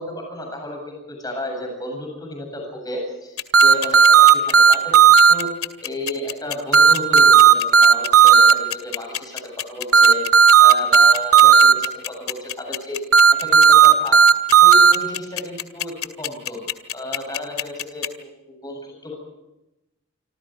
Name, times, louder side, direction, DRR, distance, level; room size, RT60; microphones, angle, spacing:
voice 1, 0.0-5.5 5.8-13.0 13.3-14.2 14.6-16.6 16.9-19.1, left 1 dB, 20° left, 1 dB, 7.8 m, -33 dB
sound 1, 3.4-18.1, left 13 dB, 85° left, 2.3 m, -27 dB
sound 2, 3.5-5.3 6.7-8.5 9.9-11.7 13.1-14.9, right 7 dB, 85° right, 2.1 m, -11 dB
28.0 x 27.0 x 4.8 m, 0.96 s
head